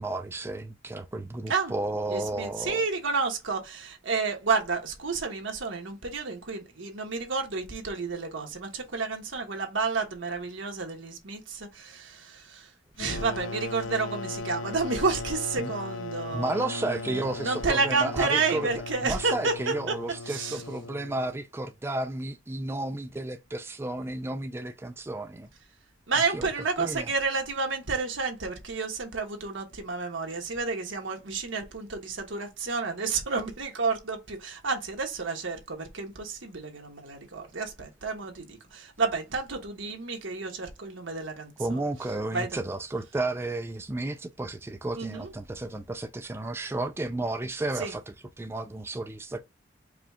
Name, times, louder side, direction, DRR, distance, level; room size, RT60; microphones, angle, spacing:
voice 1, 0.0-2.8 15.6-15.7 16.3-18.7 19.0-25.5 26.3-26.5 26.8-27.1 41.6-49.4, right 2 dB, 15° right, 0.3 m, -32 dB
voice 2, 2.1-12.7 13.0-19.5 19.9-20.0 20.3-20.6 26.1-41.8 42.3-42.6 44.9-45.3 47.8-47.9, right 4 dB, 85° right, 1.2 m, -30 dB
sound 1, 13.0-21.5, left 3 dB, 80° left, 0.3 m, -38 dB
4.9 x 2.3 x 3.5 m
head